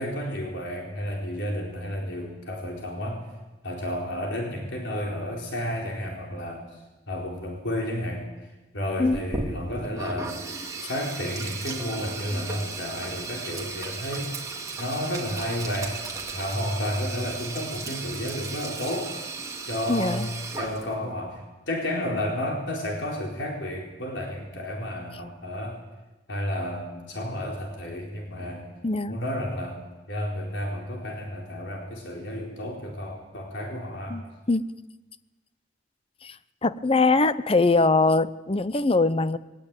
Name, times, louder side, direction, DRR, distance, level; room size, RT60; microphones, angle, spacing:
voice 1, 0.0-3.2 3.6-6.6 7.1-8.3 8.7-10.4 10.8-14.5 14.8-16.0 16.3-19.1 19.7-20.3 20.6-25.8 26.3-28.7 29.1-34.2, equal, 80° left, 0 dB, 4.2 m, -31 dB
Sink (filling or washing), 9.1-21.1, right 3 dB, 20° right, 2.5 m, -36 dB
voice 2, 19.9-20.3 28.8-29.2 34.1-34.7 36.2-36.4 36.6-39.4, left 3 dB, 30° left, 14 dB, 0.7 m, -22 dB
21.0 x 18.0 x 9.0 m, 1.1 s
head